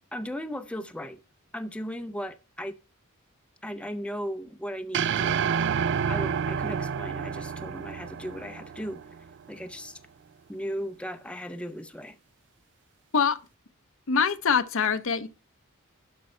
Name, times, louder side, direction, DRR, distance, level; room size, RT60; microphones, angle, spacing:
voice 1, 0.1-1.2 1.5-2.8 3.6-5.4 6.1-9.0 9.5-10.0 10.5-12.2, equal, 5° left, 0.6 m, -36 dB
sound 1, 4.9-9.3, right 7 dB, 55° right, 0.4 m, -29 dB
voice 2, 14.1-15.3, left 6 dB, 65° left, 0.7 m, -24 dB
12.0 x 5.3 x 4.4 m
head